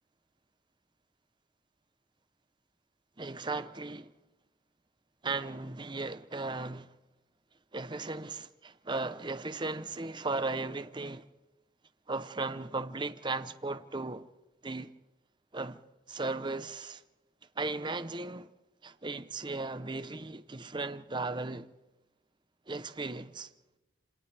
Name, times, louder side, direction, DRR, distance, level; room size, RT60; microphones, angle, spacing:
voice 1, 3.2-4.1 5.2-6.9 7.7-11.2 12.1-14.3 14.6-14.9 15.5-15.8 16.1-17.0 17.6-18.5 18.8-21.7 22.7-23.5, right 3 dB, 25° right, 0.8 m, -36 dB
29.5 x 27.5 x 3.5 m
head